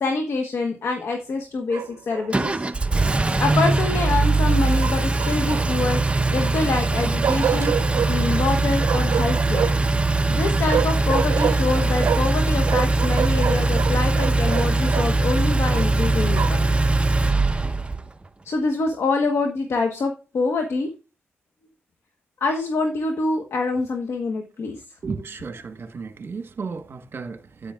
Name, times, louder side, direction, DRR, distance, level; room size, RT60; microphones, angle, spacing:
voice 1, 0.0-2.7 3.4-7.8 8.1-9.7 10.3-16.7 18.4-20.9 22.4-24.8, left 3 dB, 70° left, 1.3 m, -25 dB
Bark, 1.7-2.3 4.8-5.9 7.2-8.1 8.8-9.9 10.7-12.4 12.7-15.1 15.7-16.7, right 8 dB, 70° right, 0.6 m, -27 dB
Engine, 2.3-18.0, right 2 dB, 25° right, 0.8 m, -21 dB
voice 2, 25.0-27.7, right 4 dB, 55° right, 1.3 m, -34 dB
10.0 x 8.8 x 2.4 m
cardioid pair, 55°, 5 cm